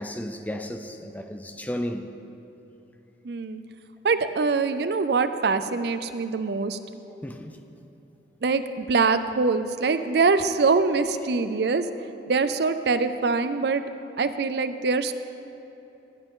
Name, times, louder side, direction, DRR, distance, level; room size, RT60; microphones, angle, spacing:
voice 1, 0.0-2.1 7.2-7.6, equal, 10° left, 6 dB, 0.5 m, -33 dB
voice 2, 3.2-3.6 4.0-6.8 8.4-11.8 12.3-13.8 14.2-15.1, right 4 dB, 60° right, 11 dB, 0.5 m, -24 dB
16.5 x 9.8 x 3.7 m, 3.0 s
head